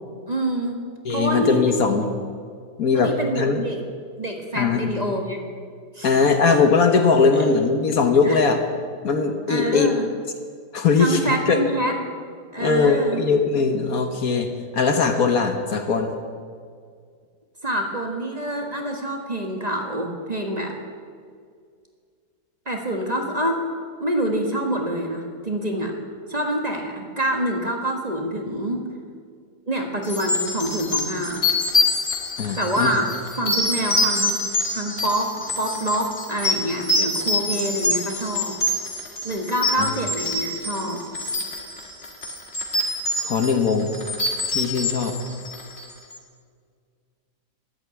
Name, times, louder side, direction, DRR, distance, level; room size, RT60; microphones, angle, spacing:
voice 1, 0.3-0.8 1.1-2.0 2.9-3.8 4.2-5.4 5.9-6.2 7.3-7.5 8.2-8.4 9.5-10.0 11.0-11.9 12.5-13.2 17.6-20.8 22.6-23.6 24.0-25.9 26.3-28.9 29.7-31.4 32.6-33.0 33.3-34.4 34.7-38.6 39.2-41.0, right 1 dB, 25° right, 2 dB, 1.6 m, -26 dB
voice 2, 1.0-2.1 2.8-3.6 4.5-4.9 6.0-8.6 9.0-9.9 10.7-11.6 12.6-16.1 32.4-32.9 39.8-39.9 43.2-43.9 44.5-45.2, left 5 dB, 60° left, 5 dB, 1.6 m, -20 dB
sound 1, 30.1-45.9, left 2 dB, 45° left, 2.4 m, -25 dB
14.0 x 12.0 x 8.3 m, 2.1 s
omnidirectional pair, 1.8 m